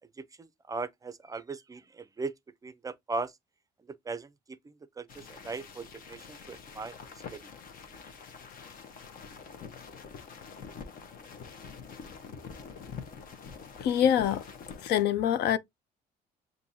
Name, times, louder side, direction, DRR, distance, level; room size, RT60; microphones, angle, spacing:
voice 1, 0.4-2.3 2.6-3.3 4.1-4.3 4.6-7.0 7.3-7.4, right 3 dB, 20° right, 0.5 m, -38 dB
sound 1, 5.1-15.0, left 6 dB, 55° left, 1.0 m, -46 dB
voice 2, 13.8-14.4 14.8-15.6, left 9 dB, 75° left, 0.6 m, -25 dB
6.9 x 2.7 x 2.7 m
cardioid pair, 110°, 17 cm